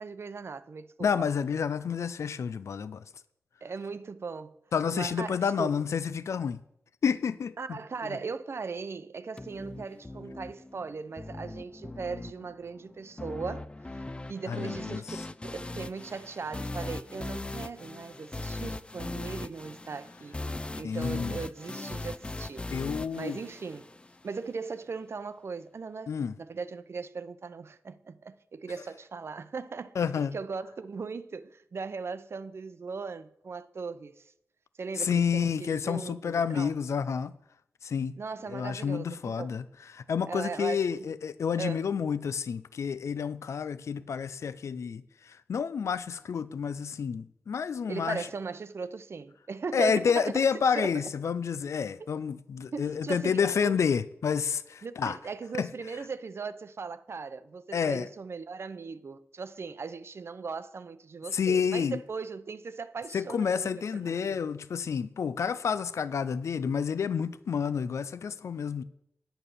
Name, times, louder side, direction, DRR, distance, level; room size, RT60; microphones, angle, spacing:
voice 1, 0.0-1.3 3.6-4.6 4.9-5.7 7.6-22.7 23.1-23.9 24.2-30.0 30.3-34.3 34.8-36.7 38.2-39.6 40.2-40.9 41.6-41.8 47.9-50.5 50.7-51.0 52.0-52.1 52.7-53.8 54.8-63.7 64.0-64.4, right 5 dB, 60° right, 0.7 m, -38 dB
voice 2, 1.0-3.0 4.7-6.6 7.0-7.8 14.5-15.2 20.8-21.4 22.7-23.4 26.1-26.3 30.0-30.3 35.0-37.3 37.8-38.2 38.5-39.6 39.9-48.3 49.7-55.2 55.6-55.7 57.7-58.1 61.3-62.0 63.1-68.8, left 6 dB, 75° left, 0.5 m, -29 dB
sound 1, 9.4-24.4, left 2 dB, 20° left, 0.4 m, -39 dB
9.1 x 8.8 x 6.7 m
cardioid pair, 65°, 5 cm